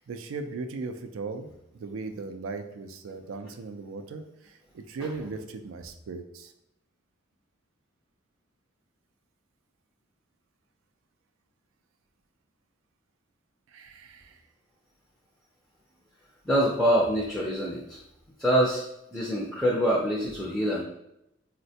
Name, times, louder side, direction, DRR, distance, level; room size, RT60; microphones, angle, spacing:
voice 1, 0.1-1.5 1.8-6.5 13.7-14.4, right 4 dB, 90° right, 7 dB, 0.4 m, -38 dB
voice 2, 16.5-18.0 18.4-18.8 19.1-20.8, equal, ahead, -4 dB, 0.4 m, -25 dB
4.0 x 2.1 x 2.7 m, 0.82 s
head